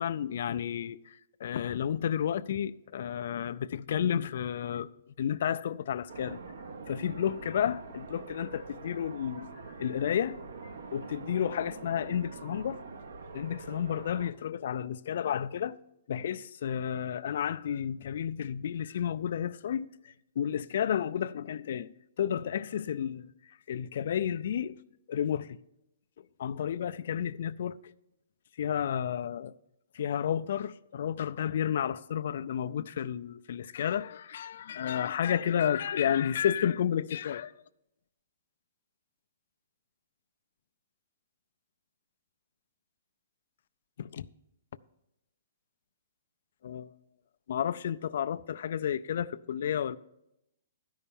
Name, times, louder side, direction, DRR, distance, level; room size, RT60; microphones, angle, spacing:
voice 1, 0.0-6.4 6.9-9.5 9.8-12.8 13.3-15.8 16.1-21.9 22.2-24.8 25.1-25.6 26.4-27.8 28.6-29.5 29.9-37.5 44.0-44.3 46.6-46.9 47.5-50.0, left 9 dB, 55° left, 0.4 m, -31 dB
sound 1, 6.1-14.3, right 4 dB, 70° right, 1.0 m, -45 dB
12.5 x 5.5 x 7.0 m
hypercardioid pair, 165°, 0 cm